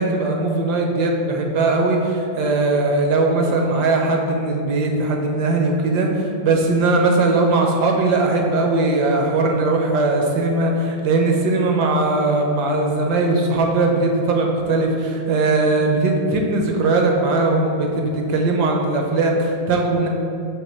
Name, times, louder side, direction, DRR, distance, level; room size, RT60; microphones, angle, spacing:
voice 1, 0.0-20.1, right 2 dB, 70° right, 1 dB, 1.3 m, -19 dB
6.3 x 3.0 x 5.7 m, 2.6 s
omnidirectional pair, 2.0 m